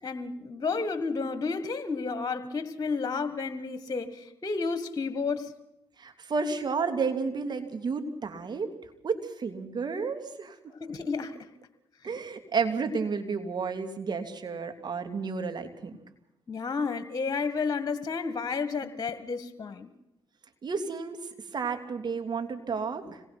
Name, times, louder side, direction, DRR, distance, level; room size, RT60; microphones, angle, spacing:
voice 1, 0.0-5.5 10.8-11.5 16.5-19.9, left 4 dB, 40° left, 11 dB, 1.8 m, -31 dB
voice 2, 6.0-8.7 9.0-10.7 12.0-16.0 20.6-23.2, right 5 dB, 50° right, 6 dB, 2.9 m, -31 dB
26.0 x 18.5 x 6.0 m, 0.87 s
supercardioid pair, 50°, 9 cm